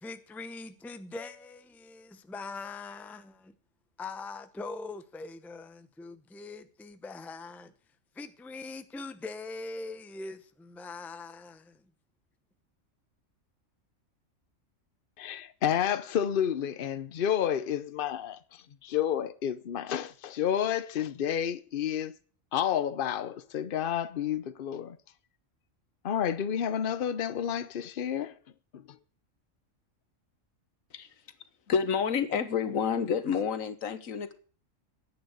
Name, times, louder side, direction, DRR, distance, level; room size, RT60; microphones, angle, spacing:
voice 1, 0.0-3.5 4.0-7.7 8.1-11.8, left 3 dB, ahead, 0.6 m, -42 dB
voice 2, 15.2-22.2 22.5-25.0 26.0-28.3 28.7-29.0, left 9 dB, 50° left, 0.9 m, -30 dB
voice 3, 31.7-34.3, left 6 dB, 80° left, 1.5 m, -29 dB
10.5 x 9.0 x 8.0 m
omnidirectional pair, 1.4 m